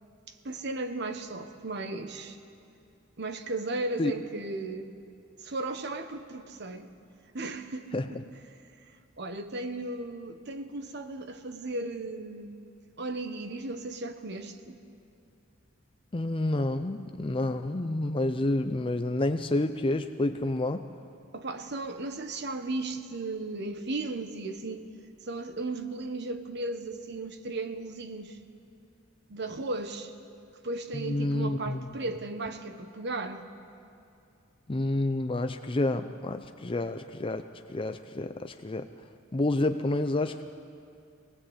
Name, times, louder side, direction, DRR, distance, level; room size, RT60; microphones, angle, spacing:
voice 1, 0.3-2.4 3.2-4.9 5.4-6.9 7.3-8.2 9.2-12.6 13.0-14.8 21.3-24.8 25.2-28.4 29.3-30.1 30.6-33.4, right 2 dB, 55° right, 1.3 m, -35 dB
voice 2, 16.1-20.9 30.9-31.9 34.7-37.4 37.7-38.9 39.3-40.4, left 2 dB, 25° left, 0.5 m, -29 dB
24.0 x 18.5 x 8.2 m
head